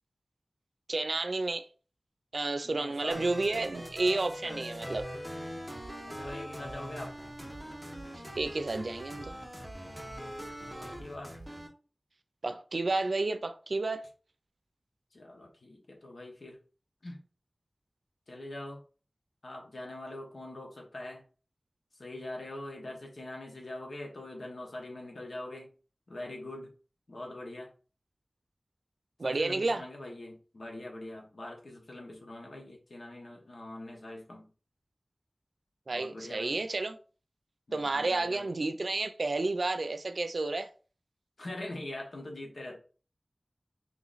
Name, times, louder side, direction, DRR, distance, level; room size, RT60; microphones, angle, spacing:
voice 1, 0.9-1.7 2.3-5.1 8.4-9.4 12.4-14.0 29.2-29.8 35.9-37.0 37.7-40.7, right 2 dB, 80° right, 0.4 m, -31 dB
voice 2, 2.6-3.3 4.4-4.7 6.0-7.2 10.8-11.4 15.1-16.6 17.0-17.2 18.3-18.8 19.4-21.2 22.0-25.7 26.1-26.7 27.1-27.7 29.2-34.5 35.9-36.6 37.7-38.5 41.4-42.8, left 1 dB, 85° left, 1.1 m, -43 dB
sound 1, 3.1-11.7, equal, ahead, 1.2 m, -42 dB
3.1 x 3.0 x 3.9 m
wide cardioid pair, 60°, 0 cm